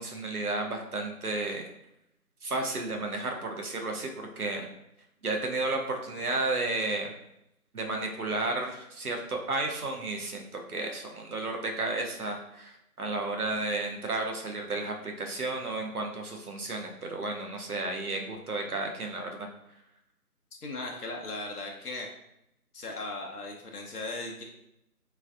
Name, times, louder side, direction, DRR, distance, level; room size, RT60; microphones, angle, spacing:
voice 1, 0.0-1.7 2.4-4.7 5.2-7.1 7.7-19.5, right 2 dB, 70° right, 2 dB, 0.8 m, -32 dB
voice 2, 20.6-22.1 22.7-24.4, left 2 dB, 75° left, 0 dB, 0.8 m, -37 dB
3.5 x 3.1 x 2.4 m, 0.82 s
figure-of-eight pair, 160°, 46 cm